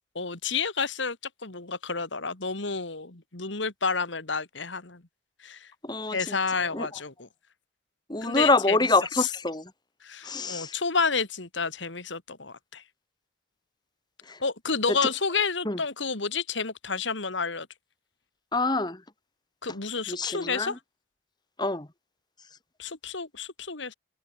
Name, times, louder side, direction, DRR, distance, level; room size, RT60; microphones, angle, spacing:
voice 1, 0.1-1.2 1.4-5.0 5.4-5.7 6.1-7.3 8.2-8.8 9.2-9.3 10.0-12.8 14.4-17.7 19.6-20.8 22.8-23.9, left 5 dB, 75° left, 2.4 m, -30 dB
voice 2, 5.8-6.4 6.7-6.9 8.1-9.6 10.2-10.8 14.3-14.4 14.9-15.0 15.7-15.8 18.5-19.0 20.1-20.8 21.6-21.9, left 2 dB, 20° left, 1.8 m, -26 dB
head